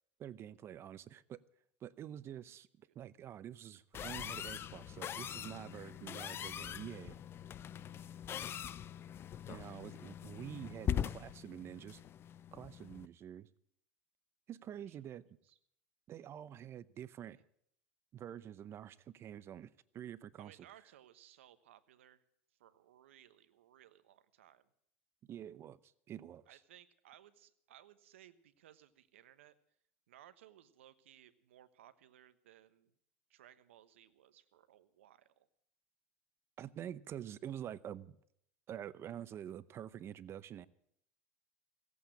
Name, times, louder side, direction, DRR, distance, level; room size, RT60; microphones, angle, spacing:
voice 1, 0.2-1.4 1.8-7.2 8.4-8.5 9.5-12.0 12.5-13.5 14.5-15.2 16.1-17.4 18.1-20.6 25.3-26.6 36.6-38.2 38.7-40.7, right 10 dB, 40° right, 17 dB, 0.7 m, -47 dB
sound 1, 3.9-13.1, left 9 dB, 35° left, 0.5 m, -42 dB
voice 2, 20.4-22.2 22.6-24.7 26.5-29.6 30.1-32.9 33.3-35.5, right 12 dB, 85° right, 13 dB, 1.1 m, -61 dB
16.5 x 8.5 x 8.7 m, 0.70 s
hypercardioid pair, 95°, 7 cm